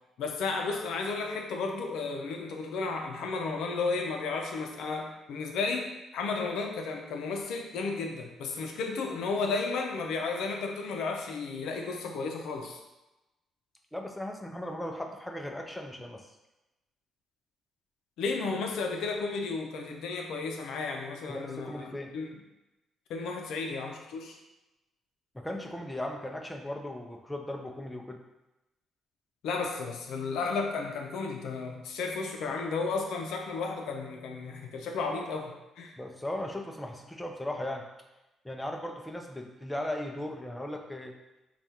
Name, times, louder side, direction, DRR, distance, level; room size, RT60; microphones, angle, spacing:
voice 1, 0.2-12.8 18.2-22.3 23.1-24.4 29.4-35.9, left 4 dB, 85° left, 2 dB, 0.5 m, -33 dB
voice 2, 13.9-16.2 21.3-22.1 25.3-28.2 36.0-37.8 38.4-41.1, left 1 dB, 10° left, 2 dB, 0.5 m, -37 dB
3.4 x 2.3 x 4.2 m, 0.99 s
cardioid pair, 90°, 0 cm